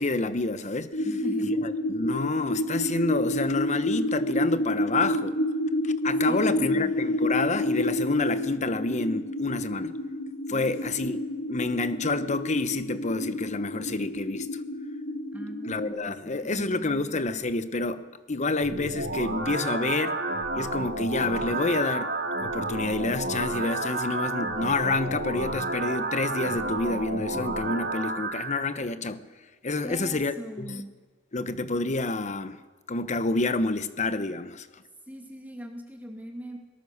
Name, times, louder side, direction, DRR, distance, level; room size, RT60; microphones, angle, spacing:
voice 1, 0.0-1.1 1.4-5.4 5.8-10.0 10.5-14.5 15.7-18.0 18.3-20.2 20.5-22.1 22.4-29.2 29.6-30.8 31.3-32.6 32.9-34.7, left 3 dB, 40° left, 1.0 m, -28 dB
sound 1, 0.9-15.9, left 1 dB, 70° left, 2.3 m, -29 dB
voice 2, 1.0-1.6 6.3-7.0 10.5-10.7 15.3-17.1 29.8-30.9 35.1-36.6, right 1 dB, 10° right, 2.1 m, -39 dB
sound 2, 18.6-28.6, right 2 dB, 55° right, 2.6 m, -31 dB
22.0 x 18.5 x 6.6 m
head